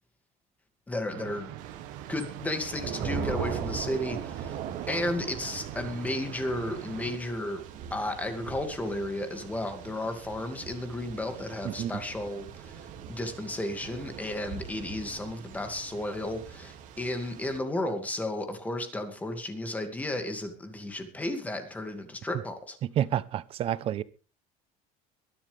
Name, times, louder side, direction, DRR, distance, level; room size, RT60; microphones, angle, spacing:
voice 1, 0.9-1.6 2.1-4.6 4.9-7.6 7.9-22.8, left 1 dB, 10° left, 2.4 m, -33 dB
sound 1, 1.1-7.2, right 12 dB, 70° right, 1.6 m, -42 dB
Thunder / Rain, 1.6-17.6, right 8 dB, 50° right, 2.5 m, -40 dB
voice 2, 23.0-24.0, right 11 dB, 35° right, 0.8 m, -29 dB
22.5 x 12.0 x 3.5 m
cardioid pair, 170°, 17 cm